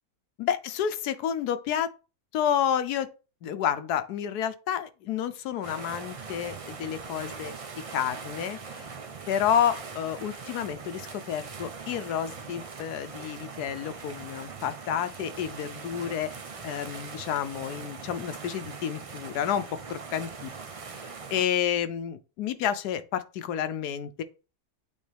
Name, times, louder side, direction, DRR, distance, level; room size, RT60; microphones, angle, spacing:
voice 1, 0.4-1.9 2.3-3.1 3.4-7.6 7.9-8.9 9.3-16.4 16.6-20.5 21.3-24.2, left 9 dB, 90° left, 1.2 m, -30 dB
sound 1, 5.6-21.5, right 5 dB, 55° right, 0.3 m, -41 dB
8.5 x 3.6 x 3.3 m
omnidirectional pair, 1.6 m